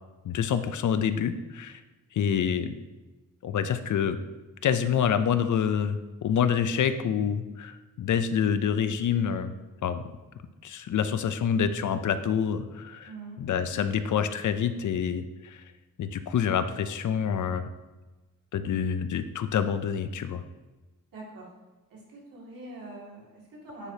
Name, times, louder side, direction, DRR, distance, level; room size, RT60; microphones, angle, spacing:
voice 1, 0.2-1.8 2.1-2.8 3.4-4.2 4.6-9.5 9.8-10.0 10.6-13.1 13.4-15.6 16.0-17.6 18.5-20.4, left 8 dB, 65° left, 11 dB, 0.5 m, -27 dB
voice 2, 13.0-13.4 21.1-21.5 21.9-23.9, right 2 dB, 85° right, -4 dB, 2.2 m, -44 dB
9.6 x 4.8 x 2.8 m, 1.2 s
cardioid pair, 95°, 33 cm